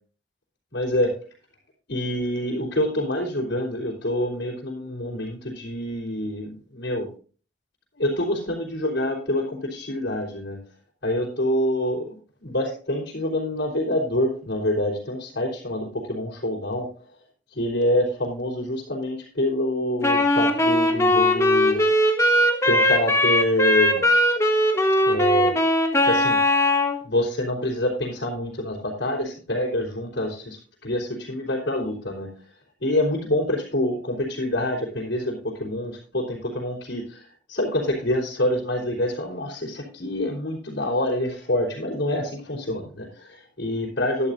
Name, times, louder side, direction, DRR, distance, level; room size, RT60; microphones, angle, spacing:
voice 1, 0.7-1.1 1.9-7.1 8.0-10.6 11.0-16.9 17.5-21.8 22.7-24.0 25.1-25.5 26.0-26.4 27.0-32.3 32.8-37.2 37.5-44.3, left 1 dB, 60° left, -5 dB, 3.6 m, -26 dB
Wind instrument woodwind instrument, 20.0-27.0, left 1 dB, 15° left, 1.3 m, -19 dB
13.0 x 11.0 x 2.6 m, 0.39 s
head